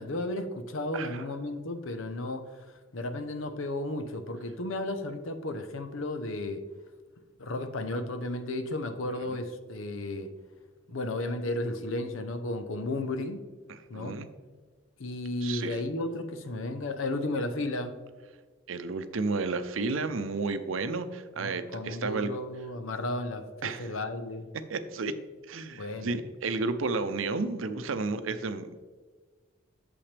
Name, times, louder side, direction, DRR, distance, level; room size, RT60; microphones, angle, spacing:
voice 1, 0.0-6.6 7.4-10.3 10.9-13.4 13.9-14.2 15.0-18.0 21.4-24.5 25.8-26.2, left 2 dB, 90° left, 9 dB, 0.8 m, -34 dB
voice 2, 0.9-1.2 9.3-9.4 13.7-14.3 15.4-15.8 18.7-22.3 23.6-23.9 24.7-25.1 25.5-28.8, right 3 dB, 90° right, 10 dB, 0.6 m, -32 dB
8.8 x 6.9 x 3.3 m, 1.4 s
head